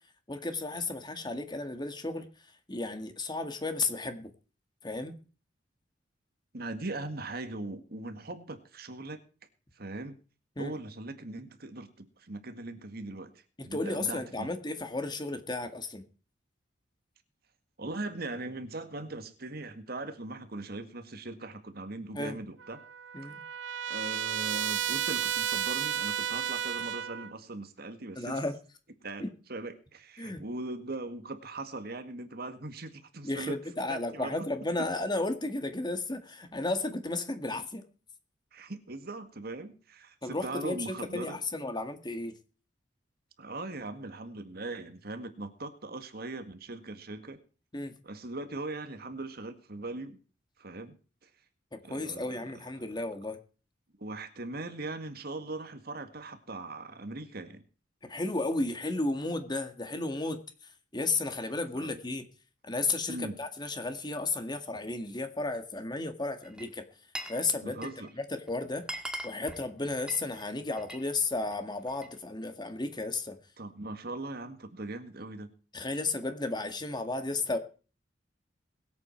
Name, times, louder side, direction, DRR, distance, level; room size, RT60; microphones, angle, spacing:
voice 1, 0.3-2.3 2.7-4.3 4.8-5.2 10.6-10.7 13.6-16.0 22.2-22.4 23.1-23.4 28.2-28.5 29.2-29.3 30.2-30.4 33.2-37.8 40.2-42.3 47.7-48.0 51.7-53.4 58.0-60.4 60.9-62.3 62.6-66.8 67.3-67.8 68.1-68.9 69.2-73.4 75.7-77.6, left 2 dB, 25° left, 8 dB, 2.0 m, -33 dB
voice 2, 6.5-9.2 9.8-10.2 10.6-13.3 13.6-14.5 17.8-22.8 23.9-28.4 29.0-33.6 33.9-34.5 38.5-41.4 43.4-47.4 48.0-50.2 50.6-51.0 51.2-51.3 51.8-52.4 54.0-57.6 61.7-62.0 63.1-63.4 67.6-68.1 73.6-75.5, right 2 dB, 55° right, 9 dB, 1.9 m, -40 dB
Trumpet, 22.6-27.3, right 10 dB, 80° right, 0.6 m, -32 dB
Glass, 66.4-67.4 67.7-68.1 68.5-68.6 68.8-71.1 71.4-72.2, right 1 dB, 5° right, 1.9 m, -41 dB
21.5 x 8.6 x 4.5 m, 0.36 s
head